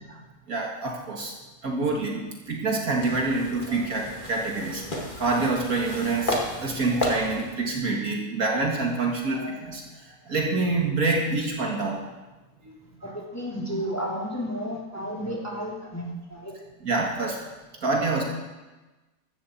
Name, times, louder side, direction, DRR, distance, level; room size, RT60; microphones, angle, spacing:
voice 1, 0.5-1.3 1.6-4.8 5.2-9.8 10.3-12.0 12.7-13.2 16.8-17.4 17.8-18.2, right 3 dB, 55° right, 0 dB, 2.1 m, -26 dB
sound 1, 3.0-7.5, left 1 dB, 30° left, 2.2 m, -32 dB
voice 2, 13.0-16.5, equal, 10° left, -3 dB, 2.4 m, -32 dB
15.0 x 13.0 x 4.3 m, 1.1 s
omnidirectional pair, 1.9 m